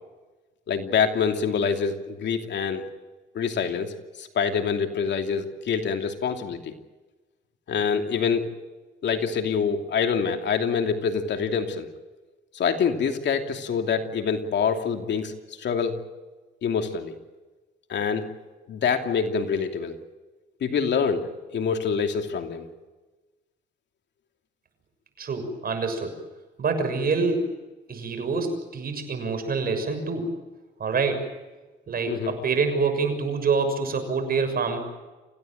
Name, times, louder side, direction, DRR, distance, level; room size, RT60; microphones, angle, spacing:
voice 1, 0.7-2.8 3.3-6.7 7.7-8.5 9.0-11.9 12.5-15.3 15.6-16.0 16.6-17.1 17.9-18.3 18.7-20.0 20.6-21.3 21.5-22.7 32.1-32.4, left 6 dB, 60° left, 5 dB, 2.8 m, -26 dB
voice 2, 25.2-26.1 26.6-27.4 27.9-30.3 30.8-31.2 31.9-34.8, right 4 dB, 50° right, 7 dB, 6.5 m, -26 dB
27.5 x 16.5 x 9.2 m, 1.2 s
cardioid pair, 90°, 20 cm